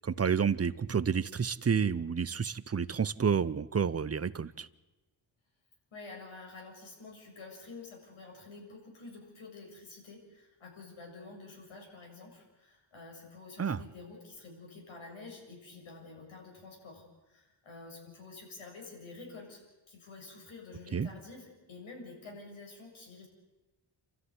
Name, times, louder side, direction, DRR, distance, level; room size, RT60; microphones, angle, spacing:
voice 1, 0.0-4.7 13.6-13.8 20.9-21.1, right 6 dB, 30° right, 16 dB, 0.7 m, -30 dB
voice 2, 5.9-23.3, left 3 dB, 75° left, 1 dB, 7.6 m, -49 dB
29.0 x 13.5 x 9.8 m, 1.1 s
wide cardioid pair, 115°, 48 cm